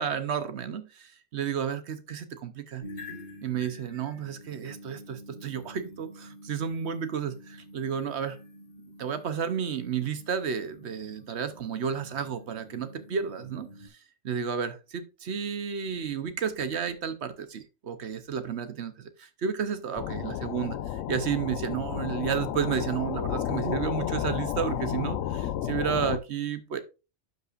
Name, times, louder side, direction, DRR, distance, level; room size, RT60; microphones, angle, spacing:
voice 1, 0.0-2.9 3.4-8.4 9.0-14.0 14.2-26.8, right 7 dB, 60° right, 1.0 m, -32 dB
sound 1, 2.8-13.9, left 1 dB, 55° left, 4.0 m, -48 dB
sound 2, 20.0-26.2, left 11 dB, 80° left, 0.9 m, -32 dB
12.0 x 5.4 x 2.5 m
omnidirectional pair, 1.3 m